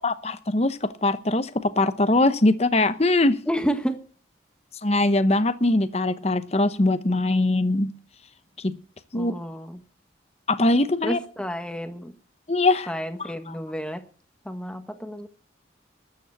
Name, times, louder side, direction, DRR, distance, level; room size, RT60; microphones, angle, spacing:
voice 1, 0.0-3.4 4.8-7.9 8.6-8.8 9.1-9.3 10.5-11.2 12.5-12.9 13.2-13.5, left 2 dB, 35° left, 12 dB, 0.9 m, -22 dB
voice 2, 3.5-4.0 9.1-9.8 11.0-12.1 12.9-14.0 14.4-15.3, equal, 5° left, 7 dB, 1.6 m, -30 dB
13.5 x 9.3 x 8.0 m, 0.42 s
head